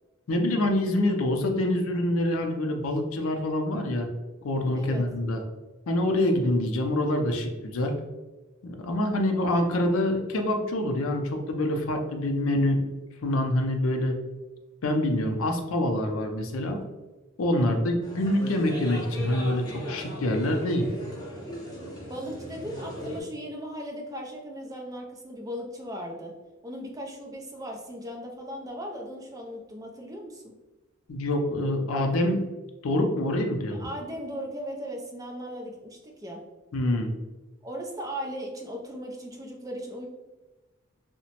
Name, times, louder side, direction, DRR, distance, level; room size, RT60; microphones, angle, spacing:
voice 1, 0.3-4.1 4.4-5.4 5.9-8.0 8.6-12.8 13.2-14.2 14.8-16.8 17.4-20.9 31.1-32.5 32.8-33.8 36.7-37.1, left 1 dB, 75° left, 4 dB, 0.5 m, -26 dB
sound 1, 18.0-23.2, equal, 20° left, 0.6 m, -38 dB
voice 2, 22.1-26.3 26.6-30.5 33.7-36.4 37.6-40.1, equal, 15° right, 1 dB, 0.4 m, -37 dB
2.8 x 2.1 x 2.8 m, 1.2 s
head